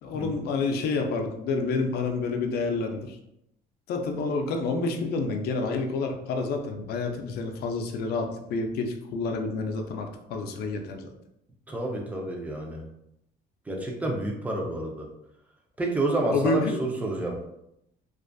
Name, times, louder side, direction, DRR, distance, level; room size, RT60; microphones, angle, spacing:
voice 1, 0.0-3.2 3.9-11.1 16.3-16.8, left 3 dB, 70° left, 4 dB, 0.4 m, -29 dB
voice 2, 11.7-12.8 13.7-15.1 15.8-17.4, right 1 dB, 10° right, 0 dB, 0.5 m, -29 dB
2.4 x 2.4 x 2.2 m, 0.81 s
cardioid pair, 110°, 17 cm